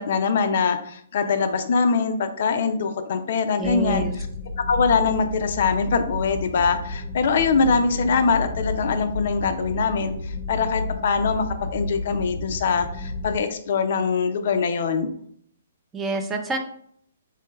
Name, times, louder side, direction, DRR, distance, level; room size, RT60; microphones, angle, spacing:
voice 1, 0.0-4.0 4.6-15.1, left 5 dB, 55° left, 8 dB, 0.4 m, -23 dB
voice 2, 3.5-4.1 15.9-16.6, right 3 dB, 10° right, 4 dB, 0.4 m, -27 dB
sound 1, 3.6-13.4, left 2 dB, 15° left, 0.9 m, -31 dB
3.8 x 2.1 x 2.9 m, 0.64 s
figure-of-eight pair, 125°, 0 cm